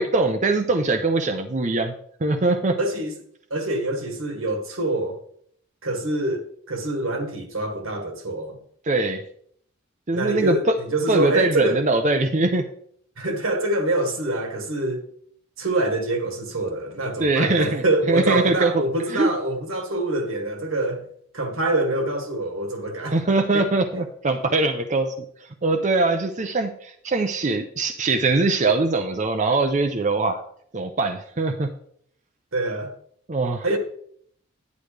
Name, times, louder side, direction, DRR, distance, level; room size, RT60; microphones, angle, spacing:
voice 1, 0.0-1.9 2.2-2.8 8.8-9.2 10.1-10.7 11.1-12.7 17.2-17.8 18.1-18.7 19.1-19.3 23.1-25.1 25.4-30.4 30.7-31.7 33.3-33.7, right 3 dB, 35° right, 0.6 m, -22 dB
voice 2, 2.8-3.1 3.5-5.2 5.8-8.6 10.1-11.8 13.2-15.1 15.6-21.1 21.3-23.2 23.5-23.7 32.5-32.9 33.6-33.8, right 2 dB, 80° right, 1.7 m, -25 dB
10.5 x 9.4 x 3.3 m
head